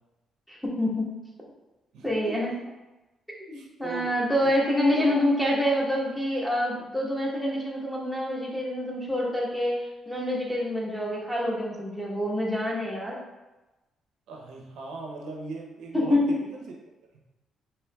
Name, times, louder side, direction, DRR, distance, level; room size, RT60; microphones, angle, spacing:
voice 1, 0.5-1.1 2.0-2.5 3.5-13.2 15.9-16.4, left 1 dB, ahead, -3 dB, 1.0 m, -27 dB
voice 2, 1.9-2.7 3.5-4.1 4.4-4.5 4.9-5.5 14.3-16.7, right 3 dB, 80° right, 0 dB, 0.6 m, -39 dB
4.4 x 2.9 x 2.2 m, 1.0 s
cardioid pair, 90°, 0 cm